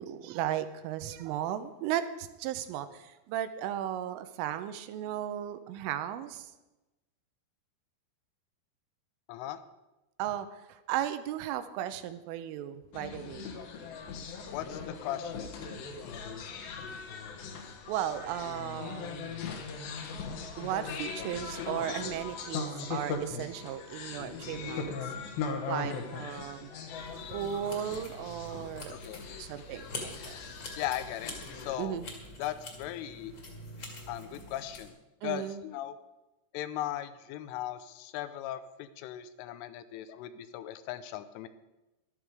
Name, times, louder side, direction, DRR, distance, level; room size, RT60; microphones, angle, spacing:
voice 1, 0.0-6.5 10.2-13.5 17.9-19.4 20.6-25.1 25.7-26.7 27.3-28.9 29.4-30.4 31.8-32.1 35.2-35.6, right 11 dB, 85° right, 11 dB, 3.3 m, -35 dB
voice 2, 9.3-9.6 14.5-15.5 28.9-29.5 30.8-32.0 32.4-33.3 34.1-34.9 35.2-36.0 36.5-41.5, left 12 dB, 85° left, 12 dB, 3.2 m, -38 dB
sound 1, 12.9-31.7, left 5 dB, 65° left, 2.4 m, -40 dB
sound 2, 26.9-34.9, left 2 dB, 40° left, 2.0 m, -45 dB
14.0 x 12.5 x 4.8 m, 1.0 s
omnidirectional pair, 5.7 m